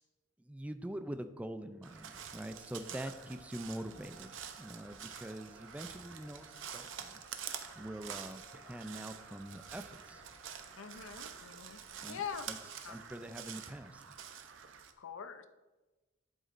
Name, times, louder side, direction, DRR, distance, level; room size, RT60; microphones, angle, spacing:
voice 1, 0.4-10.2 12.0-12.6 12.9-14.2, right 1 dB, 5° right, 9 dB, 0.4 m, -45 dB
sound 1, 1.8-13.6, equal, 25° left, 2.8 m, -63 dB
Crow, 1.8-14.9, right 8 dB, 70° right, 0.7 m, -48 dB
voice 2, 10.8-11.8 12.1-12.5 12.8-13.0 15.0-15.5, left 7 dB, 80° left, 9 dB, 0.6 m, -43 dB
11.5 x 8.1 x 2.5 m, 1.2 s
head